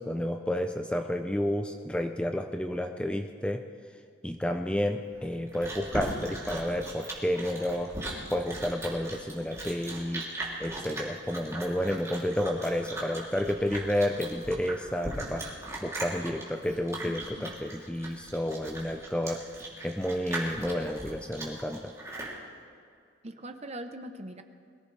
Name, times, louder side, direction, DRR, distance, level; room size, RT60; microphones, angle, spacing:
voice 1, 0.0-3.6 4.2-7.9 8.3-10.3 10.6-15.5 15.8-19.4 19.8-21.9, left 1 dB, 5° left, 5 dB, 0.5 m, -31 dB
Chewing mastication, 5.1-22.4, right 2 dB, 15° right, 3.0 m, -39 dB
voice 2, 17.0-17.6 23.2-24.4, right 1 dB, 35° right, 7 dB, 0.9 m, -42 dB
22.5 x 16.5 x 3.4 m, 2.3 s
head